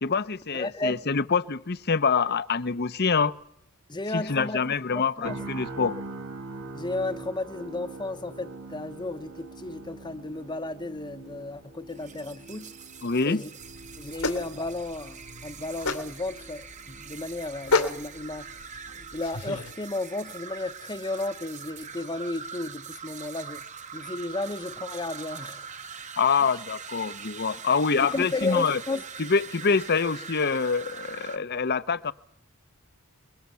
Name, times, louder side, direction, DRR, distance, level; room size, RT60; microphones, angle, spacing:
voice 1, 0.0-3.3 4.1-6.0 13.0-13.4 26.2-28.8 29.2-32.1, left 5 dB, 45° left, 0.8 m, -25 dB
voice 2, 0.5-1.1 3.9-5.4 6.7-12.7 13.2-13.5 14.0-18.5 19.1-23.6 23.9-25.7 28.0-29.0, left 2 dB, 20° left, 0.9 m, -33 dB
sound 1, 5.2-19.2 19.6-19.8, right 2 dB, 70° right, 2.0 m, -43 dB
sound 2, 11.9-31.4, right 6 dB, 35° right, 1.1 m, -43 dB
sound 3, 13.6-19.7, left 3 dB, 90° left, 3.0 m, -32 dB
23.5 x 22.5 x 7.0 m
head